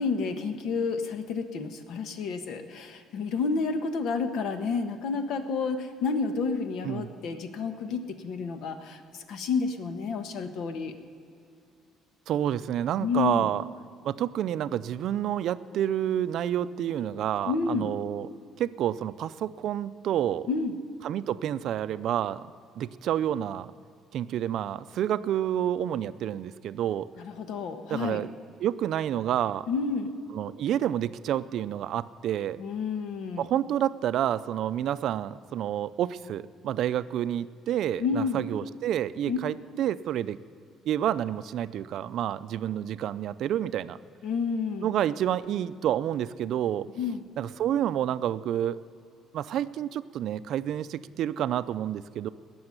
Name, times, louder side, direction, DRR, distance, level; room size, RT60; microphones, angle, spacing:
voice 1, 0.0-10.9 13.0-13.5 17.4-17.9 20.5-20.7 27.2-28.2 29.7-30.1 32.6-33.5 38.0-38.4 39.3-39.4 44.2-44.9 47.0-47.2, left 5 dB, 70° left, 8 dB, 1.3 m, -30 dB
voice 2, 12.3-13.6 14.0-18.3 18.6-20.5 21.0-22.5 22.8-23.7 24.1-27.1 27.9-28.3 28.6-29.7 30.3-32.6 33.4-40.4 40.9-44.0 44.8-46.9 47.4-48.8 49.3-52.3, right 11 dB, 60° right, 14 dB, 0.5 m, -29 dB
18.5 x 7.0 x 9.6 m, 2.4 s
cardioid pair, 135°, 0 cm